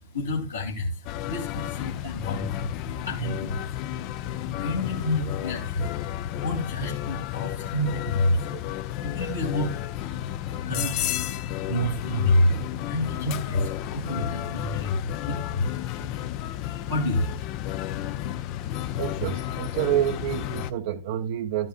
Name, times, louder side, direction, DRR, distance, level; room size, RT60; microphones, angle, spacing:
voice 1, 0.0-18.3, left 1 dB, 80° left, 2.9 m, -29 dB
sound 1, 1.1-20.7, left 13 dB, 40° left, 0.5 m, -32 dB
voice 2, 19.0-21.7, right 11 dB, 55° right, 0.7 m, -28 dB
12.5 x 9.6 x 2.4 m
figure-of-eight pair, 90°, 0 cm